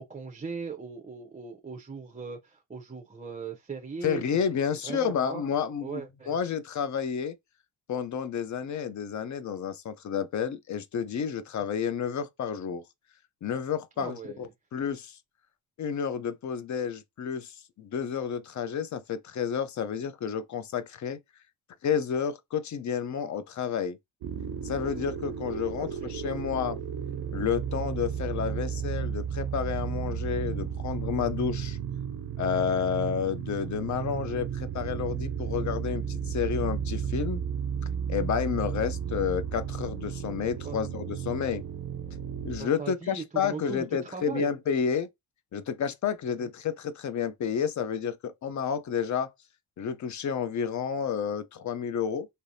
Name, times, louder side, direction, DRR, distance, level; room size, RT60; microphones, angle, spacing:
voice 1, 0.0-4.5 4.8-5.4 5.8-6.4 14.0-14.5 25.8-26.8 40.6-40.8 42.6-44.5 46.4-46.5, right 5 dB, 20° right, 0.6 m, -39 dB
voice 2, 4.0-7.4 7.9-12.8 13.4-15.2 15.8-21.2 21.8-24.0 24.6-26.8 27.3-31.8 32.4-37.4 38.1-41.6 42.4-45.1 45.5-49.3 49.8-52.3, left 7 dB, 45° left, 0.6 m, -30 dB
sound 1, 24.2-42.6, right 8 dB, 65° right, 0.5 m, -33 dB
3.2 x 2.7 x 2.6 m
cardioid pair, 95°, 40 cm